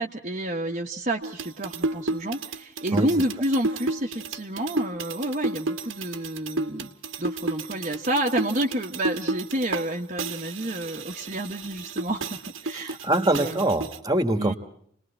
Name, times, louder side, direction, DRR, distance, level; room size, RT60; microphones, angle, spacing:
voice 1, 0.0-6.9 7.2-13.6 14.4-14.5, right 1 dB, 40° right, 0 dB, 1.2 m, -29 dB
sound 1, 1.2-9.9 10.2-14.0, right 2 dB, 80° right, 1.3 m, -32 dB
voice 2, 12.7-14.6, right 1 dB, 20° right, 9 dB, 1.6 m, -24 dB
30.0 x 20.0 x 4.3 m, 0.67 s
head